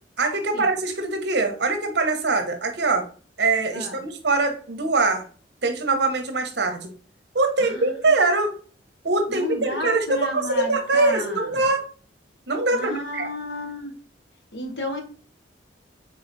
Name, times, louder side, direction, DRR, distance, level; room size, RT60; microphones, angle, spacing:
voice 1, 0.2-3.1 3.4-5.3 5.6-6.9 7.3-8.5 9.0-11.8 12.5-13.3, right 3 dB, 65° right, 5 dB, 0.9 m, -23 dB
voice 2, 7.6-7.9 9.3-11.6 12.7-13.9 14.5-15.0, left 2 dB, 65° left, 3 dB, 1.2 m, -32 dB
4.2 x 3.8 x 2.6 m, 0.39 s
head